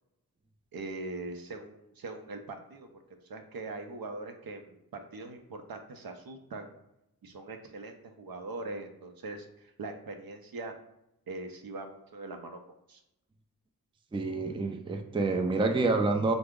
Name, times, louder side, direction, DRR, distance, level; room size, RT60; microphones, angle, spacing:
voice 1, 0.7-2.9 3.2-6.8 7.2-10.7 11.3-13.0, right 2 dB, 70° right, 5 dB, 0.5 m, -41 dB
voice 2, 14.1-16.3, right 3 dB, 15° right, 5 dB, 0.3 m, -28 dB
3.4 x 2.0 x 3.5 m, 0.86 s
wide cardioid pair, 45°, 37 cm